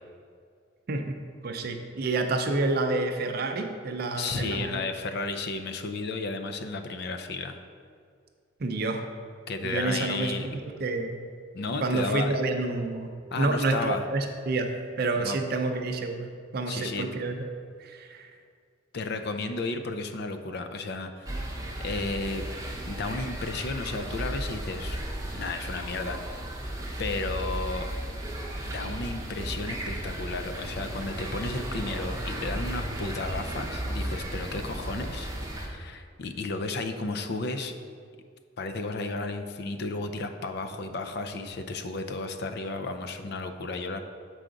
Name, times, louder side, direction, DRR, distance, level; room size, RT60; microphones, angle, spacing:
voice 1, 1.4-4.8 8.6-9.0 9.6-11.2 11.8-14.7 15.0-17.4 17.8-18.3, right 2 dB, 50° right, 5 dB, 0.5 m, -29 dB
voice 2, 4.1-7.6 9.5-10.6 11.5-12.4 13.3-14.0 15.2-15.4 16.7-17.1 18.9-21.5 21.8-22.4 22.8-25.0 25.3-26.4 27.0-27.9 28.6-37.8 38.6-44.0, left 3 dB, 55° left, 7 dB, 0.5 m, -33 dB
sound 1, 21.3-35.7, right 1 dB, 15° right, 0.8 m, -35 dB
7.6 x 4.8 x 3.9 m, 2.2 s
head